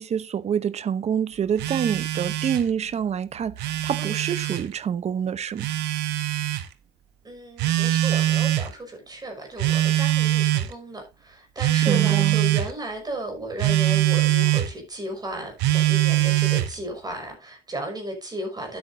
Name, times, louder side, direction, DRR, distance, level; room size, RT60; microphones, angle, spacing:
voice 1, 0.0-5.7 11.9-12.4, right 8 dB, 40° right, 0.8 m, -27 dB
Telephone, 1.6-2.7 3.4-4.6 5.6-6.6 7.6-8.7 9.6-10.7 11.6-12.7 13.6-14.7 15.6-16.7, right 14 dB, 80° right, 1.2 m, -22 dB
voice 2, 7.2-18.8, right 1 dB, 25° right, 5.4 m, -34 dB
12.0 x 8.7 x 2.6 m
cardioid pair, 110°, 17 cm